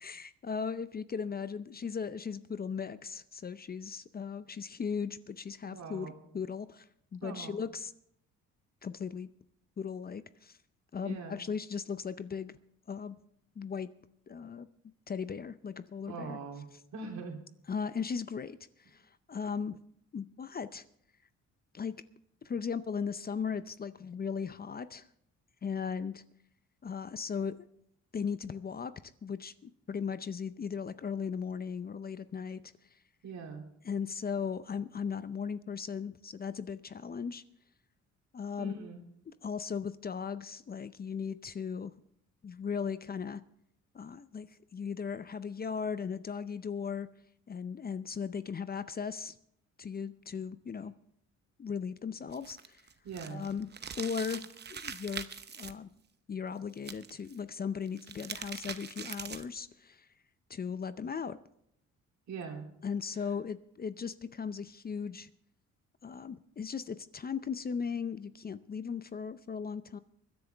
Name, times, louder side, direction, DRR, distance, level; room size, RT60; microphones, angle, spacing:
voice 1, 0.0-6.9 7.1-7.9 8.8-9.3 9.8-10.6 10.9-12.5 12.9-13.2 13.6-13.9 14.3-14.7 15.1-16.4 17.7-18.6 18.9-19.0 19.3-19.8 20.1-20.9 21.7-22.0 22.4-25.1 25.6-26.2 26.8-27.7 28.1-28.9 29.2-32.6 33.8-37.4 38.3-38.8 39.3-41.9 42.4-43.4 43.9-47.1 47.5-49.4 49.8-50.9 51.6-52.8 53.3-53.7 54.0-55.3 55.6-55.9 56.3-60.1 60.5-61.4 62.8-65.3 66.0-70.0, left 6 dB, 30° left, 13 dB, 0.6 m, -37 dB
voice 2, 5.6-6.2 7.2-7.6 11.0-11.4 16.0-16.7 16.9-17.4 33.2-33.7 38.6-39.0 53.0-53.4 62.3-62.7, right 5 dB, 65° right, 2 dB, 3.1 m, -42 dB
sound 1, 52.3-55.7 56.8-57.4 57.9-59.6, right 6 dB, 35° right, 0.8 m, -43 dB
25.0 x 10.5 x 3.4 m, 0.72 s
cardioid pair, 90°, 30 cm